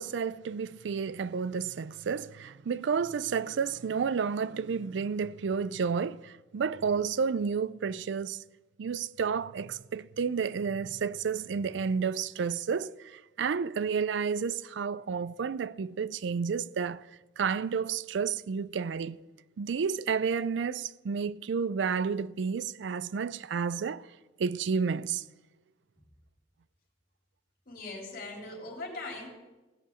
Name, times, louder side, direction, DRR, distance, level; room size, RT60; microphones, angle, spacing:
voice 1, 0.0-8.4 8.8-17.0 17.4-19.2 19.6-24.1 24.4-25.2, right 6 dB, 80° right, 0.4 m, -31 dB
voice 2, 27.7-29.3, left 2 dB, 50° left, 3.7 m, -40 dB
16.5 x 6.9 x 8.8 m
head